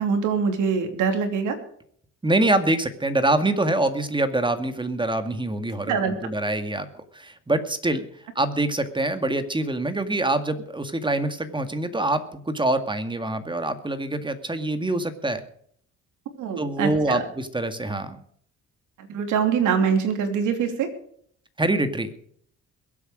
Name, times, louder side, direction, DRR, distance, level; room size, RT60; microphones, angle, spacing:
voice 1, 0.0-1.6 5.9-6.1 16.3-17.3 19.0-20.9, right 6 dB, 90° right, 6 dB, 3.0 m, -24 dB
voice 2, 2.2-8.1 8.4-15.4 16.6-18.2 21.6-22.1, right 2 dB, 15° right, 9 dB, 2.0 m, -25 dB
22.0 x 8.4 x 5.0 m, 0.62 s
cardioid pair, 90°, 30 cm